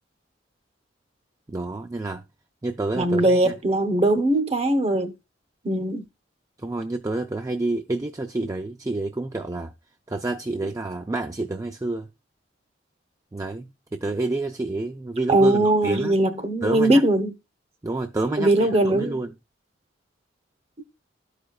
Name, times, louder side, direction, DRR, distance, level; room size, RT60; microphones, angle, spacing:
voice 1, 1.5-2.2 2.6-3.5 6.6-9.7 10.1-12.1 13.3-16.2 16.6-17.0 17.8-19.3, right 2 dB, 20° right, 0.4 m, -29 dB
voice 2, 2.9-5.1 5.6-6.0 15.3-17.3 18.4-19.2, right 1 dB, 35° right, 0.8 m, -20 dB
12.5 x 5.0 x 2.3 m
head